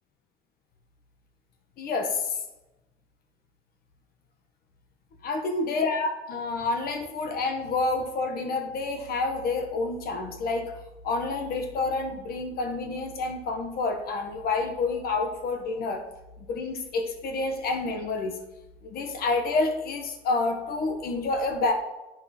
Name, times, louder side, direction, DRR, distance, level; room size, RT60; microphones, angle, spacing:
voice 1, 1.8-2.3 5.2-10.7 11.0-16.0 16.5-18.3 18.8-21.7, left 3 dB, 65° left, 5 dB, 1.4 m, -28 dB
8.7 x 6.0 x 4.3 m, 1.0 s
cardioid pair, 110°, 17 cm